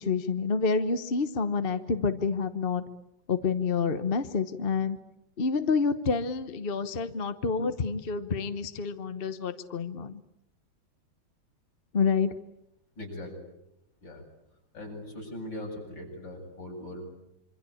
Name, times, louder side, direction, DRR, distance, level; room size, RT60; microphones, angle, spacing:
voice 1, 0.0-2.8 3.3-5.0 5.4-10.1 11.9-12.3, left 5 dB, 35° left, 10 dB, 1.0 m, -28 dB
voice 2, 13.0-13.3 14.0-14.2 14.7-17.0, left 1 dB, 65° left, 1 dB, 8.7 m, -40 dB
26.5 x 25.5 x 8.6 m, 0.85 s
omnidirectional pair, 2.2 m